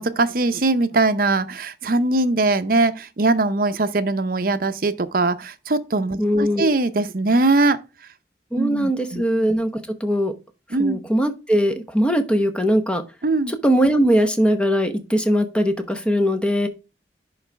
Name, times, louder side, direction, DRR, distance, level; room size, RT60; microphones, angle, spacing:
voice 1, 0.0-7.8 8.5-9.2 10.7-11.0 13.2-13.5, right 2 dB, 50° right, 0.7 m, -21 dB
voice 2, 6.2-6.8 8.5-10.3 10.8-13.0 13.5-16.7, equal, 5° left, 0.9 m, -20 dB
10.5 x 3.9 x 3.3 m
head